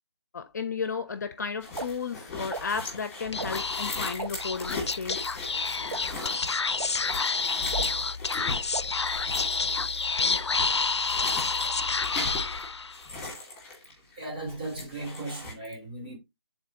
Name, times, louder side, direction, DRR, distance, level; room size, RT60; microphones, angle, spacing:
voice 1, 0.3-6.0, left 5 dB, 40° left, 0.6 m, -34 dB
sound 1, 1.6-14.2 14.5-15.5, left 2 dB, 10° left, 2.1 m, -39 dB
sound 2, 1.8-1.9 2.5-2.6 3.4-3.5 4.2-4.3 5.1-5.2 5.9-6.0 6.8-6.9 7.7-7.9 8.7-8.8, right 3 dB, 80° right, 0.9 m, -33 dB
Speech / Whispering, 3.3-13.1, left 4 dB, 90° left, 0.4 m, -29 dB
voice 2, 14.2-16.2, right 2 dB, 20° right, 2.6 m, -37 dB
10.0 x 3.9 x 2.8 m
figure-of-eight pair, 155°, 14 cm